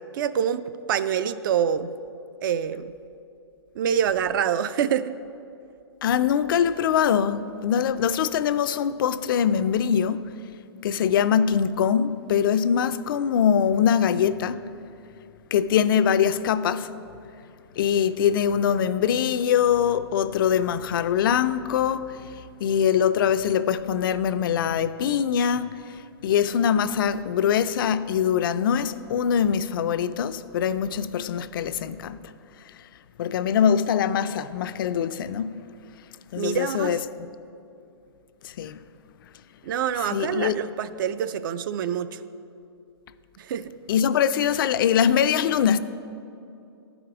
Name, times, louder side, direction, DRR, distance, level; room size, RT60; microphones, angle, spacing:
voice 1, 0.1-1.9 2.4-2.9 3.8-5.1 36.4-37.0 39.6-42.2 43.4-43.7, right 8 dB, 50° right, 0.4 m, -26 dB
voice 2, 6.0-10.3 10.8-14.7 15.5-16.9 17.8-22.2 22.6-25.7 26.2-32.2 33.2-35.6 36.3-37.3 38.4-38.8 40.1-40.6 43.9-45.8, left 8 dB, 55° left, 0.4 m, -23 dB
11.0 x 5.0 x 6.0 m
hypercardioid pair, 150°, 14 cm